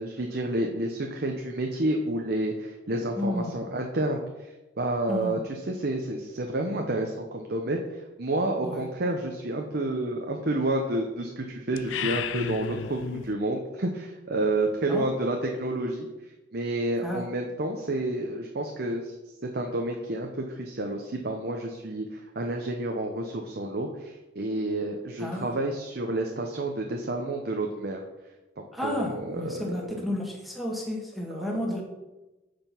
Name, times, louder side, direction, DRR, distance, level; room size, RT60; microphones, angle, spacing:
voice 1, 0.0-16.1 16.5-19.1 19.4-28.0 28.6-30.0 31.3-31.6, right 1 dB, 55° right, 2 dB, 0.9 m, -30 dB
voice 2, 3.2-3.6 5.1-5.5 8.6-8.9 14.9-15.1 17.0-17.2 25.2-25.6 28.7-31.8, left 1 dB, ahead, -1 dB, 1.7 m, -32 dB
sound 1, 11.7-13.3, left 7 dB, 75° left, 0.4 m, -33 dB
8.9 x 5.2 x 6.0 m, 1.1 s
head